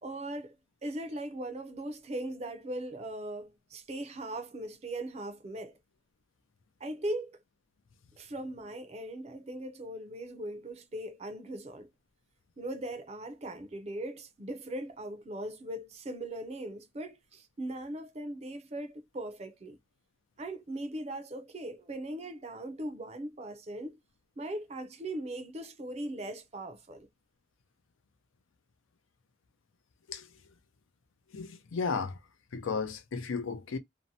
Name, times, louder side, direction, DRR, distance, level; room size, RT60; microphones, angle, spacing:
voice 1, 0.0-0.5 0.8-5.8 6.8-7.4 8.2-11.9 12.6-19.8 20.4-24.0 24.4-27.1, right 1 dB, 30° right, 0.4 m, -39 dB
voice 2, 31.3-32.2 32.5-33.8, left 5 dB, 85° left, 0.5 m, -34 dB
2.7 x 2.1 x 2.6 m
head